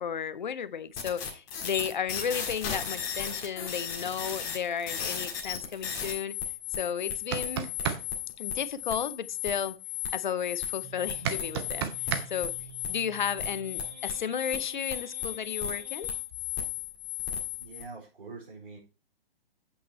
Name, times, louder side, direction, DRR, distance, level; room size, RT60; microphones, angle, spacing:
voice 1, 0.0-6.4 6.7-7.7 8.4-9.8 10.1-11.9 12.3-12.5 12.9-16.1, left 7 dB, 50° left, 0.6 m, -33 dB
sound 1, 1.0-17.8, left 8 dB, 20° left, 1.7 m, -35 dB
sound 2, 7.1-8.0 11.3-12.3, right 8 dB, 25° right, 0.7 m, -30 dB
sound 3, 10.8-16.2, right 6 dB, 40° right, 3.3 m, -49 dB
voice 2, 17.6-18.8, right 3 dB, 60° right, 4.5 m, -44 dB
8.2 x 5.8 x 4.4 m
figure-of-eight pair, 125°, 31 cm